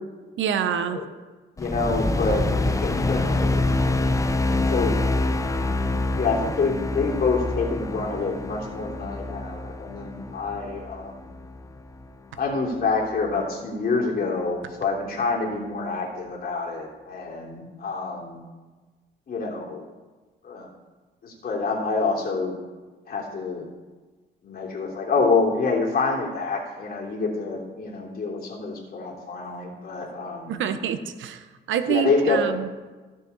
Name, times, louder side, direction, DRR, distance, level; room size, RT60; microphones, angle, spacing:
voice 1, 0.4-1.0 30.5-32.7, right 8 dB, 75° right, 10 dB, 0.9 m, -26 dB
voice 2, 1.6-3.7 4.7-5.1 6.1-11.3 12.4-18.4 19.3-19.8 20.4-20.7 21.2-22.6 23.1-23.7 24.4-30.6 31.9-32.5, left 4 dB, 50° left, -2 dB, 3.0 m, -27 dB
sound 1, 1.6-12.0, left 2 dB, 15° left, 0.7 m, -26 dB
15.0 x 6.7 x 4.1 m, 1.3 s
cardioid pair, 90°, 20 cm